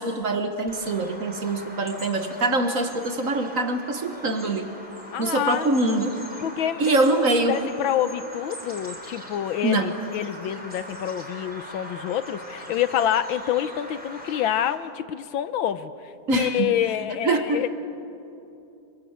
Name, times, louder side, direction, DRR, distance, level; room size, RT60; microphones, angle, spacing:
voice 1, 0.0-4.7 5.2-6.1 6.8-7.7 9.6-9.9 16.3-16.7 17.2-17.6, right 2 dB, 45° right, 7 dB, 1.6 m, -24 dB
Bird vocalization bird call bird song, 0.7-14.7, equal, 5° right, 3.5 m, -41 dB
voice 2, 5.1-5.7 6.4-7.0 7.5-15.9 16.3-17.7, left 10 dB, 75° left, 13 dB, 1.5 m, -27 dB
26.0 x 23.5 x 8.1 m, 2.7 s
omnidirectional pair, 2.2 m